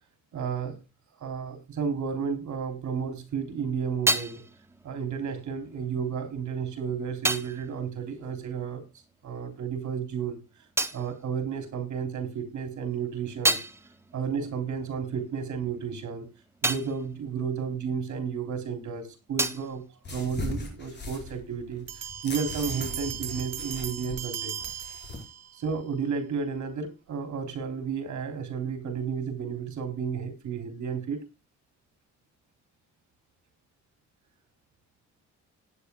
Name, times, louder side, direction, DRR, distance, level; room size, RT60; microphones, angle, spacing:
voice 1, 0.3-0.8 1.2-4.4 4.8-8.8 9.2-10.4 10.9-13.6 14.1-16.2 16.6-19.8 20.1-21.9 22.2-24.5 25.6-31.2, right 6 dB, 75° right, 9 dB, 3.5 m, -32 dB
sound 1, 3.2-9.2 9.5-12.2 12.6-18.6 18.9-20.9, right 2 dB, 10° right, 0.7 m, -34 dB
sound 2, 20.0-25.2, left 2 dB, 35° left, 4.7 m, -39 dB
Bell, 21.9-25.7, right 8 dB, 60° right, 1.3 m, -37 dB
18.0 x 9.5 x 2.2 m, 0.27 s
wide cardioid pair, 160°, 29 cm